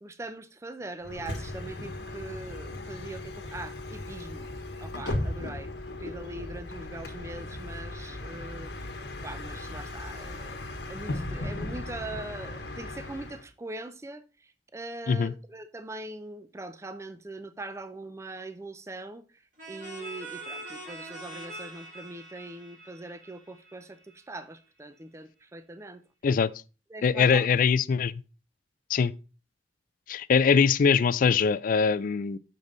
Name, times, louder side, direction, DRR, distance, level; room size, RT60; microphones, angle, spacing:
voice 1, 0.0-4.5 4.8-5.7 6.0-8.7 9.2-19.4 19.7-26.0 26.9-27.6, right 2 dB, 15° right, 0.4 m, -42 dB
Bus, 1.0-13.5, left 1 dB, 70° left, 1.2 m, -37 dB
sound 1, 19.6-24.2, right 2 dB, 50° right, 3.2 m, -43 dB
voice 2, 27.0-28.1 28.9-29.1 30.1-32.4, left 6 dB, 50° left, 0.3 m, -22 dB
6.5 x 5.4 x 3.9 m
head